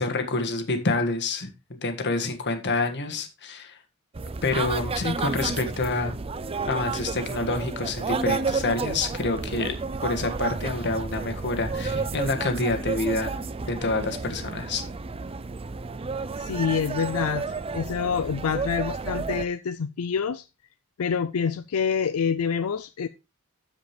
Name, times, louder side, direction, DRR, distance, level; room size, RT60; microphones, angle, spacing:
voice 1, 0.0-3.8 4.4-6.2 6.7-9.7 10.0-13.3 13.7-14.9, left 3 dB, 55° left, 1.6 m, -27 dB
sound 1, 4.1-19.5, right 4 dB, 25° right, 0.5 m, -31 dB
voice 2, 16.4-20.4 21.0-23.1, left 6 dB, 85° left, 0.5 m, -27 dB
13.5 x 5.1 x 3.3 m
head